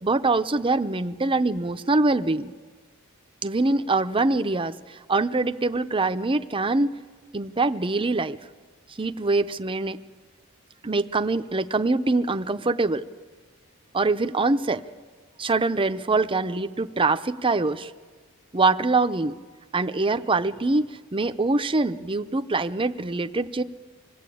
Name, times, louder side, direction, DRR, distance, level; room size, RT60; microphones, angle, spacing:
voice 1, 0.0-2.5 3.4-7.0 7.3-8.4 9.0-10.0 10.8-13.0 13.9-14.8 15.4-17.9 18.5-19.3 19.7-23.6, right 3 dB, 25° right, 10 dB, 0.7 m, -24 dB
25.5 x 20.0 x 8.6 m, 1.4 s
head